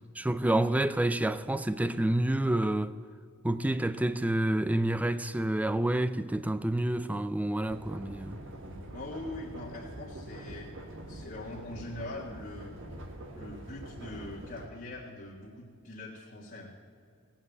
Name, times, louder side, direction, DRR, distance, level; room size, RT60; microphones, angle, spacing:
voice 1, 0.2-2.9 3.4-8.4, right 1 dB, 5° right, 0.4 m, -28 dB
sound 1, 7.7-14.7, right 1 dB, 60° right, 1.6 m, -44 dB
voice 2, 8.9-10.7 11.1-12.8 13.3-16.8, left 2 dB, 45° left, 1.6 m, -42 dB
18.0 x 7.4 x 8.1 m
head